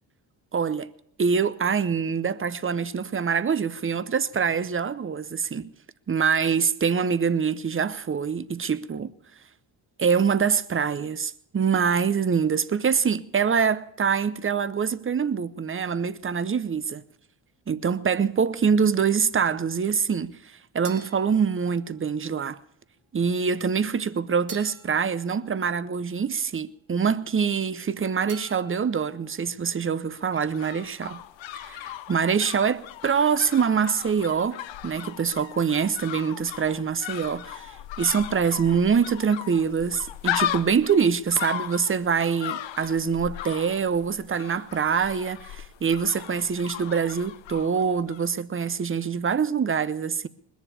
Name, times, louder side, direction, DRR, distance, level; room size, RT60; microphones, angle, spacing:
voice 1, 0.5-0.9 1.2-5.7 6.1-9.1 10.0-17.0 17.7-20.4 20.7-22.6 23.1-31.2 31.6-50.3, right 6 dB, 25° right, 0.7 m, -25 dB
sound 1, 20.8-22.3 24.5-26.3 28.3-29.4, right 6 dB, 70° right, 2.5 m, -47 dB
sound 2, 30.1-48.3 48.5-48.6, left 12 dB, 75° left, 0.8 m, -37 dB
20.0 x 7.3 x 8.5 m
cardioid pair, 65°, 46 cm